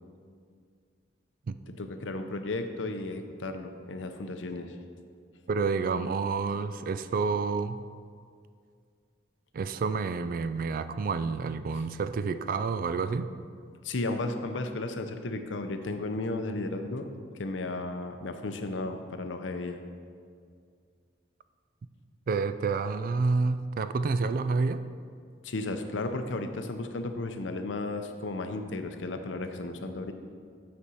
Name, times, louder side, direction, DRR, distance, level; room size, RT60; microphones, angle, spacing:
voice 1, 1.8-4.7 13.8-17.1 17.4-19.8 25.4-30.1, left 2 dB, 85° left, 7 dB, 0.7 m, -34 dB
voice 2, 5.5-7.8 9.5-13.3 22.3-24.9, right 4 dB, 50° right, 12 dB, 0.3 m, -29 dB
8.5 x 4.2 x 6.2 m, 2.2 s
head